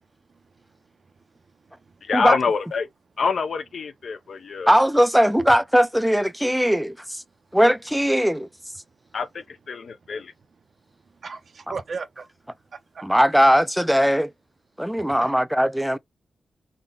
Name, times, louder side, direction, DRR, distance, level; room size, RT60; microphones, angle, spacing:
voice 1, 0.3-0.8 1.4-2.0 10.1-10.3 10.9-13.1 15.0-15.3, right 5 dB, 50° right, 0.5 m, -39 dB
voice 2, 2.0-2.9 3.2-4.7 9.1-10.3, left 5 dB, 55° left, 0.5 m, -26 dB
voice 3, 4.7-7.2 7.5-8.5 13.0-14.3 14.8-16.0, equal, ahead, 0.3 m, -19 dB
3.8 x 2.1 x 3.7 m
wide cardioid pair, 160°, 0 cm